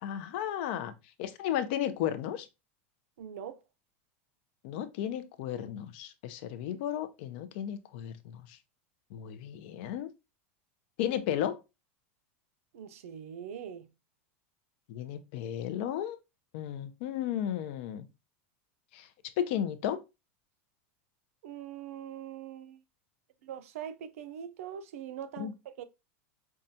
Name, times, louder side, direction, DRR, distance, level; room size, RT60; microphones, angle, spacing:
voice 1, 0.0-0.9 1.2-2.5 4.6-8.6 9.1-10.1 11.0-11.6 14.9-16.2 16.5-18.1 18.9-19.1 19.4-20.0 25.4-25.5, left 10 dB, 50° left, 0.5 m, -34 dB
voice 2, 3.2-3.6 12.7-13.9 21.4-22.8 23.4-25.8, right 9 dB, 80° right, 0.5 m, -42 dB
5.4 x 2.3 x 2.6 m
supercardioid pair, 165°, 8 cm